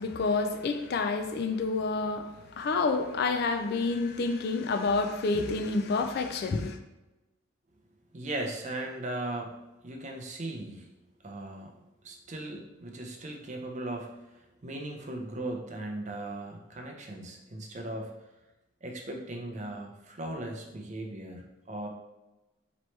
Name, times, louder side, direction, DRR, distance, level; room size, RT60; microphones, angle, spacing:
voice 1, 0.0-6.8, left 3 dB, 50° left, 6 dB, 0.3 m, -29 dB
voice 2, 8.1-9.5 9.8-10.9 11.2-11.8 12.0-18.2 18.8-21.9, right 1 dB, 35° right, 2 dB, 0.5 m, -38 dB
4.4 x 3.0 x 3.1 m, 1.0 s
head